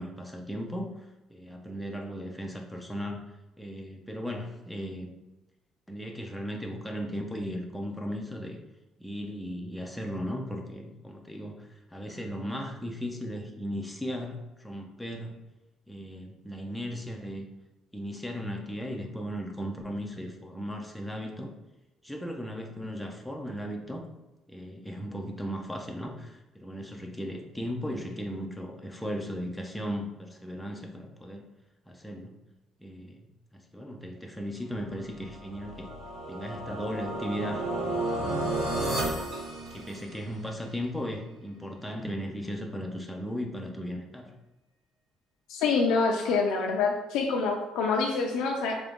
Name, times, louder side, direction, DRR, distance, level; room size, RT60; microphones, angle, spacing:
voice 1, 0.0-3.2 3.6-5.1 5.9-8.6 9.0-15.4 15.9-17.4 17.9-21.5 22.0-24.1 24.5-31.4 31.9-32.3 32.8-35.9 36.3-38.5 39.7-44.3, equal, ahead, 1 dB, 0.3 m, -36 dB
sound 1, 35.2-40.4, right 2 dB, 50° right, 0.9 m, -32 dB
voice 2, 45.5-48.8, left 4 dB, 80° left, 0 dB, 0.4 m, -26 dB
3.7 x 2.5 x 3.5 m, 1.0 s
cardioid pair, 180°, 0 cm